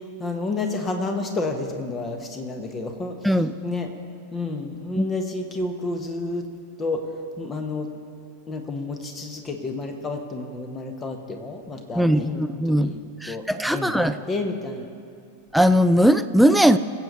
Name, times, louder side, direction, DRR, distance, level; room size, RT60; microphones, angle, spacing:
voice 1, 0.2-3.2 3.6-3.9 4.3-6.4 6.8-7.0 7.4-7.9 8.5-13.0 13.3-13.4 13.7-14.9, left 3 dB, 20° left, 5 dB, 1.4 m, -30 dB
voice 2, 3.2-3.6 5.0-5.1 12.0-12.9 13.2-14.2 15.5-16.8, equal, ahead, 10 dB, 0.4 m, -19 dB
22.5 x 8.0 x 4.2 m, 2.3 s
figure-of-eight pair, 90°, 0 cm